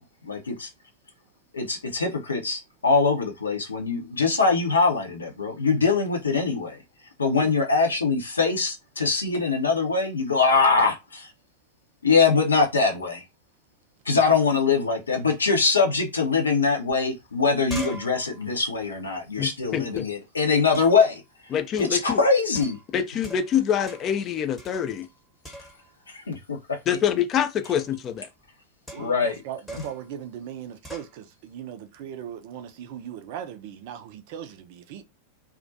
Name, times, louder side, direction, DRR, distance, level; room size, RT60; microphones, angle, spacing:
voice 1, 0.2-0.7 1.5-6.8 7.2-11.3 12.0-13.2 14.0-21.2 21.8-22.8 26.1-26.6 29.0-29.4, left 4 dB, 75° left, 0.6 m, -23 dB
voice 2, 7.3-7.6 28.9-35.0, right 9 dB, 50° right, 0.4 m, -38 dB
sound 1, 17.0-17.1 17.3-20.0 20.7-21.1 21.8-22.1 22.5-23.6 23.9-24.2 24.6-25.2 25.4-26.0 27.6-28.0 28.9-29.3 29.7-30.1 30.8-31.1, equal, 5° left, 1.0 m, -42 dB
voice 3, 19.4-20.1 21.5-22.2 22.9-25.1 26.9-28.3, left 9 dB, 30° left, 0.4 m, -25 dB
2.4 x 2.1 x 2.6 m
figure-of-eight pair, 90°, 0 cm